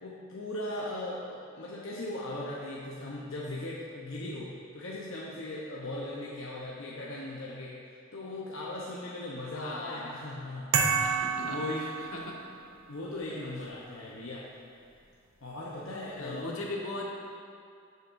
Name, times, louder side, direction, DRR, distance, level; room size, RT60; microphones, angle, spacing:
voice 1, 0.0-7.8 8.1-11.9 12.9-14.4 15.4-16.5, left 1 dB, 70° left, -5 dB, 0.9 m, -38 dB
voice 2, 9.5-10.1 11.0-12.4 13.6-13.7 16.1-17.1, left 2 dB, 85° left, -2 dB, 1.4 m, -39 dB
sound 1, 10.7-12.6, right 5 dB, 75° right, 0.8 m, -29 dB
10.5 x 8.1 x 2.6 m, 2.3 s
head